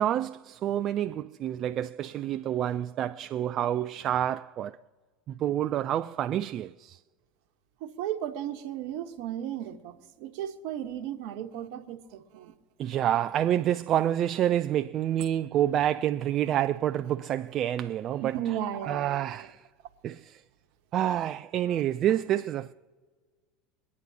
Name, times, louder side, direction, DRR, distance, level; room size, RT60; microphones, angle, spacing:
voice 1, 0.0-4.8 5.3-7.0 12.8-18.4 18.9-19.7 20.0-20.4 20.9-22.7, right 11 dB, 45° right, 0.4 m, -28 dB
voice 2, 7.8-12.5 18.2-19.5 21.7-21.8, right 11 dB, 65° right, 1.2 m, -35 dB
23.5 x 9.6 x 2.8 m
hypercardioid pair, 85°, 0 cm